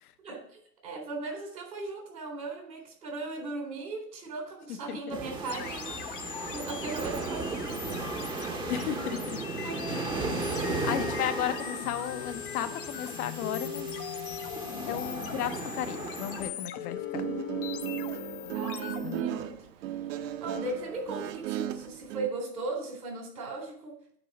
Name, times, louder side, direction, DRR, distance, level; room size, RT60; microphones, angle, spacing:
voice 1, 0.2-6.1 6.5-8.1 9.6-10.3 18.5-19.7 20.4-24.2, right 3 dB, 85° right, 1 dB, 3.9 m, -38 dB
sound 1, 5.1-16.5, right 3 dB, 10° right, 0.7 m, -36 dB
sound 2, 5.5-19.2, left 10 dB, 35° left, 0.5 m, -39 dB
voice 2, 8.7-9.4 10.6-13.9 14.8-17.3, left 10 dB, 65° left, 11 dB, 0.8 m, -34 dB
Guitar, 17.0-22.3, right 11 dB, 50° right, 0.7 m, -35 dB
9.0 x 3.9 x 6.2 m, 0.65 s
hypercardioid pair, 125°, 49 cm